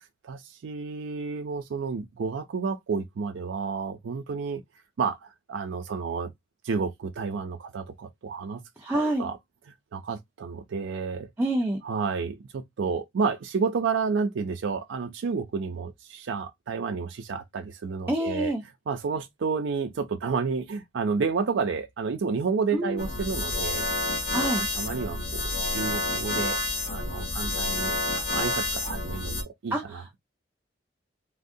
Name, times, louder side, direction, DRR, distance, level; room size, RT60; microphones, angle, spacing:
voice 1, 0.2-4.6 5.0-6.3 6.6-8.6 8.9-9.4 9.9-11.3 11.8-18.5 18.9-23.9 24.2-26.6 26.8-30.0, right 5 dB, 85° right, 0.4 m, -30 dB
voice 2, 8.8-9.2 11.4-11.8 18.1-18.6 22.7-23.0 24.3-24.6 29.7-30.2, right 1 dB, 10° right, 0.4 m, -27 dB
sound 1, 23.0-29.4, left 2 dB, 75° left, 0.9 m, -29 dB
3.5 x 2.0 x 2.6 m
head